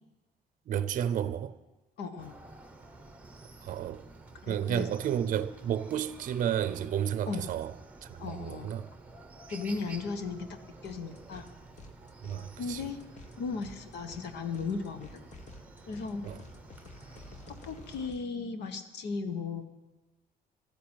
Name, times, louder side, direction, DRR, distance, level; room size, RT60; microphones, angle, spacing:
voice 1, 0.7-1.5 3.6-4.1 4.5-7.7 8.1-8.9 12.2-12.8 16.2-16.4, right 9 dB, 50° right, 0.6 m, -32 dB
voice 2, 2.0-2.3 4.4-4.9 7.3-7.5 8.2-8.7 9.5-10.6 10.8-11.5 12.6-13.0 13.4-15.2 15.9-16.3 17.5-19.6, left 4 dB, 85° left, 1.4 m, -36 dB
Chicken rooster, 2.2-18.1, right 3 dB, 10° right, 1.1 m, -51 dB
sound 1, 10.8-11.5 11.8-18.2, left 2 dB, 45° left, 1.2 m, -52 dB
12.5 x 9.8 x 9.0 m
cardioid pair, 160°, 17 cm